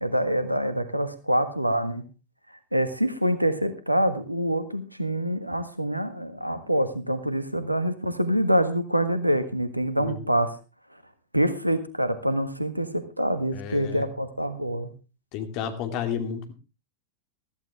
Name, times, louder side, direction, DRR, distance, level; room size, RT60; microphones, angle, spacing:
voice 1, 0.0-2.1 2.7-10.5 11.3-14.9, equal, 90° right, 11 dB, 1.5 m, -26 dB
voice 2, 13.5-14.0 15.3-16.5, left 8 dB, 45° left, 7 dB, 2.5 m, -31 dB
15.5 x 14.0 x 3.4 m, 0.31 s
figure-of-eight pair, 90°, 0 cm